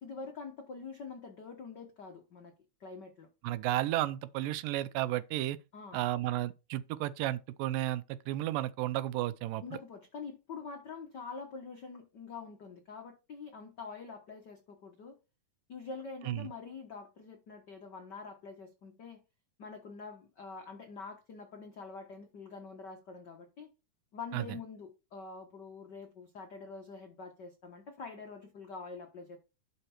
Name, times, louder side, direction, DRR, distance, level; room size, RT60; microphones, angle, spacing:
voice 1, 0.0-2.5 2.8-3.3 5.7-6.0 9.6-15.2 15.7-19.2 19.6-23.7 24.1-29.4, left 4 dB, 80° left, 0.9 m, -45 dB
voice 2, 3.4-5.6 5.9-9.6 16.3-16.5 24.3-24.4, right 15 dB, 85° right, 2.3 m, -33 dB
11.0 x 4.5 x 4.4 m
omnidirectional pair, 3.9 m